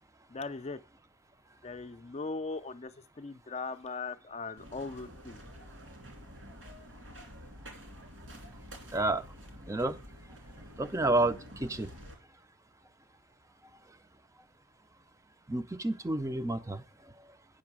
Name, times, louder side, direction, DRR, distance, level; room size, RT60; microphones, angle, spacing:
voice 1, 0.3-0.8 1.6-2.9 3.2-5.4, left 3 dB, 35° left, 0.5 m, -39 dB
sound 1, 4.6-12.1, equal, 75° right, 2.7 m, -49 dB
voice 2, 8.9-9.3 9.7-10.0 10.8-11.9 15.5-16.8, right 2 dB, 15° right, 0.5 m, -30 dB
8.7 x 5.9 x 6.1 m
head